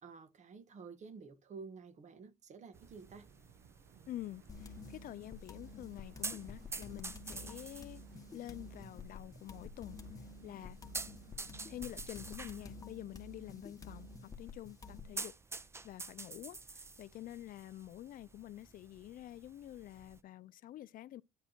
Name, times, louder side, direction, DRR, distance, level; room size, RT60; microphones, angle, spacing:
voice 1, 0.0-3.3, right 5 dB, 45° right, 1.4 m, -51 dB
sound 1, 2.7-20.2, right 3 dB, 15° right, 0.6 m, -49 dB
sound 2, 2.7-12.1, right 8 dB, 80° right, 1.1 m, -63 dB
voice 2, 4.1-8.1 8.3-10.8 11.7-15.3 15.8-21.2, left 13 dB, 55° left, 0.5 m, -48 dB
sound 3, 4.5-15.2, left 3 dB, 20° left, 1.5 m, -50 dB
10.0 x 5.3 x 4.4 m
cardioid pair, 110°, 17 cm